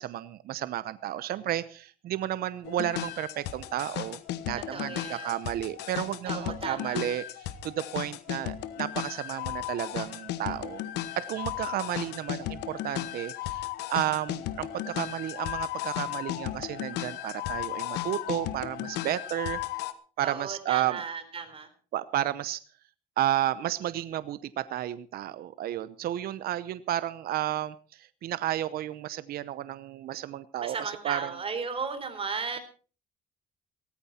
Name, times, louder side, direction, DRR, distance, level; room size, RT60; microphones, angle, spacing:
voice 1, 0.0-4.2 4.4-7.2 7.6-10.8 11.1-19.6 20.2-21.0 21.9-22.6 23.2-31.3, right 12 dB, 65° right, 15 dB, 0.8 m, -32 dB
sound 1, 2.6-19.9, left 13 dB, 85° left, 1.3 m, -35 dB
voice 2, 4.7-5.4 6.3-7.0 20.2-21.7 30.6-32.6, right 5 dB, 35° right, 9 dB, 4.0 m, -35 dB
17.5 x 14.0 x 4.3 m, 0.38 s
cardioid pair, 110°, 17 cm